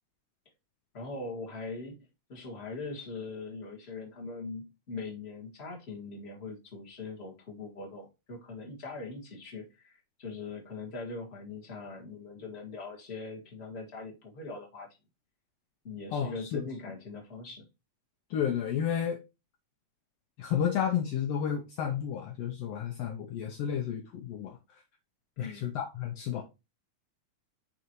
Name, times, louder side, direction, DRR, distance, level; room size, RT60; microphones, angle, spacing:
voice 1, 0.9-14.9 15.8-17.7 25.4-25.7, left 3 dB, 25° left, 1.8 m, -41 dB
voice 2, 16.1-16.6 18.3-19.2 20.4-24.6 25.4-26.4, left 8 dB, 75° left, 1.6 m, -31 dB
9.6 x 3.8 x 3.0 m
omnidirectional pair, 3.4 m